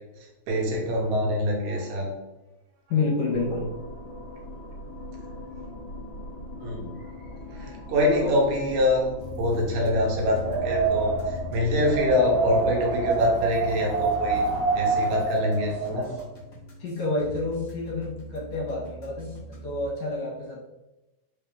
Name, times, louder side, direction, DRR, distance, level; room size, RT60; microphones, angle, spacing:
voice 1, 0.5-2.1 6.6-6.9 7.2-14.4 14.8-16.1, left 1 dB, 80° right, -1 dB, 2.2 m, -25 dB
voice 2, 2.9-3.7 8.2-8.4 16.8-20.6, left 3 dB, 70° left, -4 dB, 2.1 m, -29 dB
sound 1, 3.3-12.1, left 1 dB, 90° left, 1.0 m, -40 dB
sound 2, 9.2-19.9, left 2 dB, 50° left, 1.0 m, -41 dB
Wind, 10.2-16.2, right 3 dB, 65° right, 1.5 m, -26 dB
5.0 x 2.5 x 3.4 m, 1.0 s
omnidirectional pair, 3.5 m